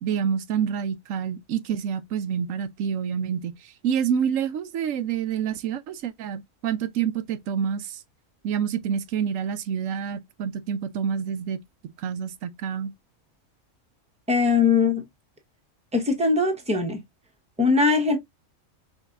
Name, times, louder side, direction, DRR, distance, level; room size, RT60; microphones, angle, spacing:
voice 1, 0.0-3.5 3.8-8.0 8.4-11.6 12.0-12.9, right 8 dB, 90° right, 1.0 m, -27 dB
voice 2, 14.3-15.0 15.9-17.0 17.6-18.2, left 4 dB, 5° right, 1.1 m, -21 dB
5.1 x 3.8 x 2.5 m
omnidirectional pair, 1.3 m